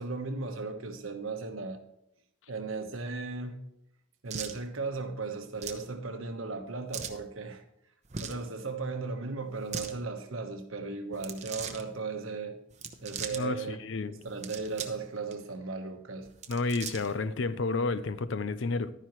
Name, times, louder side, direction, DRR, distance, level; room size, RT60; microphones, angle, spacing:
voice 1, 0.0-1.8 2.5-3.6 4.2-7.6 8.2-12.6 13.0-13.8 14.1-16.3, right 3 dB, 85° right, 1.2 m, -36 dB
sound 1, 4.3-4.6 5.6-5.9 6.9-7.2 8.1-8.4 9.5-9.9 11.1-11.8 12.7-13.4 14.2-15.0 15.3-15.4 16.3-17.2, right 6 dB, 35° right, 0.8 m, -39 dB
voice 2, 13.3-14.1 16.5-18.9, left 3 dB, 65° left, 0.6 m, -31 dB
12.0 x 10.0 x 3.1 m
head